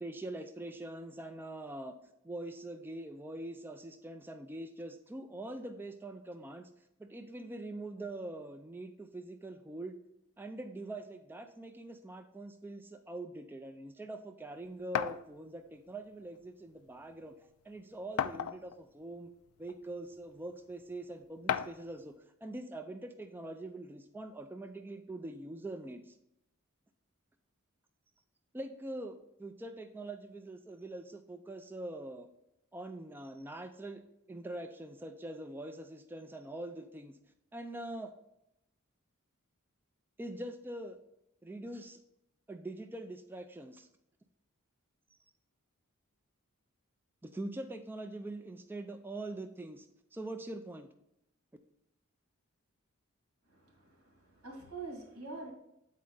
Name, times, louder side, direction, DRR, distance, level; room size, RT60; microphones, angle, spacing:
voice 1, 0.0-2.0 2.2-6.7 7.0-9.9 10.4-19.3 19.6-22.2 22.4-26.1 28.5-32.3 32.7-34.0 34.3-37.2 37.5-38.1 40.2-41.0 41.4-42.0 42.5-43.9 47.2-49.9 50.1-50.9, right 2 dB, 10° right, 7 dB, 0.3 m, -43 dB
sound 1, 14.9-15.2 16.4-16.5 16.9-17.0 18.2-18.8 19.7-19.8 21.5-21.9, left 9 dB, 75° left, 0.3 m, -33 dB
voice 2, 53.5-55.5, right 3 dB, 90° right, 1 dB, 1.9 m, -46 dB
8.3 x 4.3 x 3.8 m, 0.82 s
head